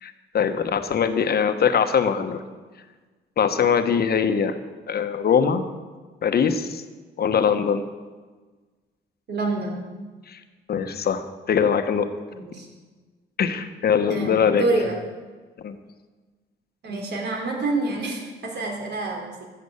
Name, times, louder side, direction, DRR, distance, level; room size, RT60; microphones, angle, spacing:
voice 1, 0.0-2.4 3.4-4.6 4.9-5.6 6.2-6.8 7.2-7.8 10.3-10.4 10.7-12.1 13.4-14.6 15.6-15.8, left 7 dB, 55° left, 9 dB, 1.2 m, -22 dB
voice 2, 9.3-9.8 12.3-12.7 14.1-15.0 16.8-19.4, right 2 dB, 60° right, 1 dB, 3.5 m, -27 dB
13.5 x 8.0 x 7.1 m, 1.4 s
cardioid pair, 90°, 20 cm